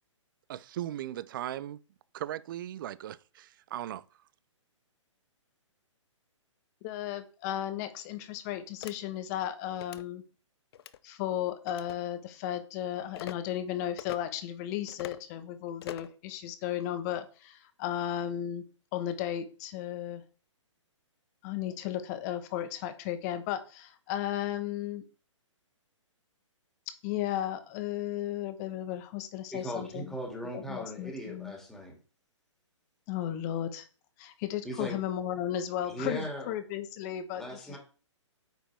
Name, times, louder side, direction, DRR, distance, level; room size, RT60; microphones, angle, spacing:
voice 1, 0.5-1.8 2.1-4.0, right 12 dB, 40° right, 0.4 m, -38 dB
voice 2, 6.8-10.2 11.0-18.6 18.9-20.2 21.4-25.0 27.0-30.1 30.5-31.6 33.1-33.9 34.2-37.8, left 11 dB, 30° left, 1.0 m, -35 dB
sound 1, 8.8-8.9 9.7-10.0 10.7-11.0 11.7-12.0 13.1-13.4 14.0-14.2 14.9-15.2 15.8-16.2, left 10 dB, 50° left, 0.5 m, -43 dB
voice 3, 29.5-31.9 34.6-35.0 35.9-36.5 37.4-37.8, equal, ahead, 2.2 m, -38 dB
9.0 x 5.0 x 3.4 m
hypercardioid pair, 135°, 16 cm